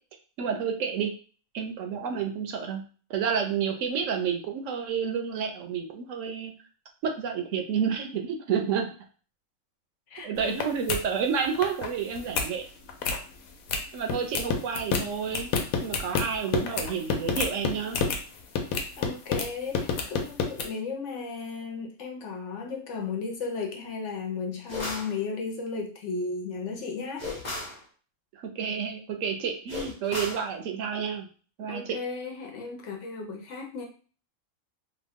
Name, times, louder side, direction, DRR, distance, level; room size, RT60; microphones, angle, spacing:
voice 1, 0.4-1.1 1.5-2.8 3.1-6.5 7.0-8.9 10.2-12.6 13.9-15.5 15.8-18.0 28.6-31.3 31.6-32.0, right 7 dB, 70° right, 4 dB, 0.9 m, -30 dB
voice 2, 10.1-10.6 18.8-27.3 31.7-33.8, left 4 dB, 65° left, 2 dB, 0.9 m, -35 dB
sound 1, 10.4-10.6 10.9-11.0 11.4-11.9 12.2-12.5 12.9-13.2 13.7-13.8 14.1-18.2 18.6-19.5 19.7-20.7, left 5 dB, 90° left, 1.1 m, -28 dB
sound 2, 24.7-25.1 27.2-27.8 29.7-30.5, left 2 dB, 35° left, 1.1 m, -34 dB
3.0 x 2.2 x 3.5 m, 0.39 s
omnidirectional pair, 1.4 m